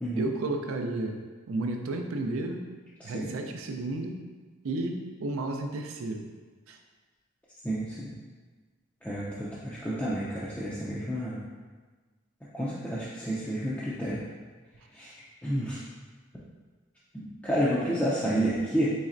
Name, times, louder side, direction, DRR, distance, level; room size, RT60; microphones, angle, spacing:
voice 1, 0.2-1.2 1.5-2.7 3.0-4.2 4.6-6.3 6.7-6.8, right 2 dB, 85° right, 4 dB, 0.4 m, -32 dB
voice 2, 7.6-8.1 9.0-11.4 12.5-14.2 14.9-15.1 15.4-15.8 17.1-18.9, right 1 dB, 5° left, -9 dB, 0.3 m, -30 dB
4.1 x 3.2 x 2.5 m, 1.4 s
head